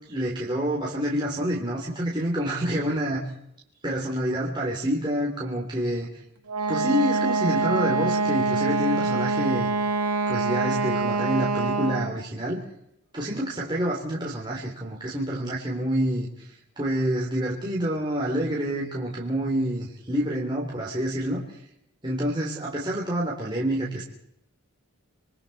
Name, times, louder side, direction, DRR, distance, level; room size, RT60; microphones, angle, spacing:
voice 1, 0.1-3.2 3.8-6.1 6.7-9.7 10.3-12.6 13.1-16.5 16.8-21.4 22.0-24.0, equal, 20° right, -4 dB, 3.6 m, -27 dB
Wind instrument woodwind instrument, 6.5-12.2, right 3 dB, 90° right, 1.4 m, -25 dB
28.0 x 21.5 x 4.4 m, 0.77 s
head